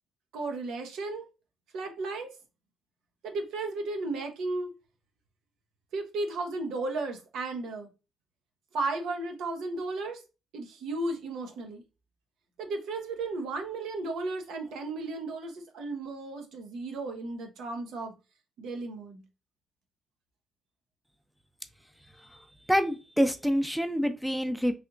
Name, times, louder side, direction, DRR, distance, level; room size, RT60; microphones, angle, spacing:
voice 1, 0.3-1.3 1.7-2.3 3.2-4.7 5.9-7.9 8.7-10.2 10.5-11.8 12.6-18.1 18.6-19.2, right 3 dB, 85° right, 0.8 m, -34 dB
voice 2, 22.2-24.7, equal, ahead, 0.4 m, -27 dB
3.3 x 2.8 x 2.5 m
cardioid pair, 90°, 0 cm